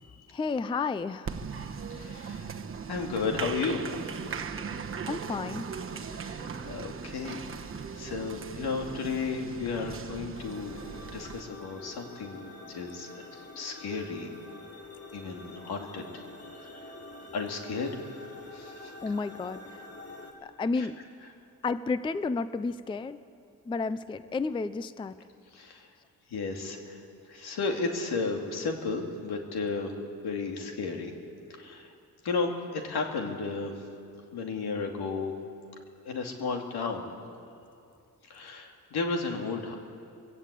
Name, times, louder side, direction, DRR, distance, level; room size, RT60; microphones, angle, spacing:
voice 1, 0.3-1.4 5.1-5.7 19.0-19.8 20.4-21.0 21.6-23.2 23.7-25.1, left 4 dB, 15° left, 14 dB, 0.4 m, -31 dB
Applause, 1.3-11.4, right 6 dB, 35° right, 1.0 m, -39 dB
voice 2, 1.6-2.5 2.9-3.8 4.2-4.3 6.1-7.4 7.9-10.8 11.1-14.3 15.1-16.1 16.5-16.9 17.3-18.0 18.5-18.9 20.8-20.9 25.5-25.9 26.3-27.0 27.3-29.9 30.2-31.1 31.5-31.9 32.2-33.7 34.3-35.3 36.0-37.1 38.3-39.8, left 4 dB, 80° left, 3 dB, 2.6 m, -33 dB
sound 1, 10.3-20.3, left 2 dB, 40° left, 2.7 m, -47 dB
20.5 x 16.5 x 8.3 m, 2.6 s
wide cardioid pair, 145°, 38 cm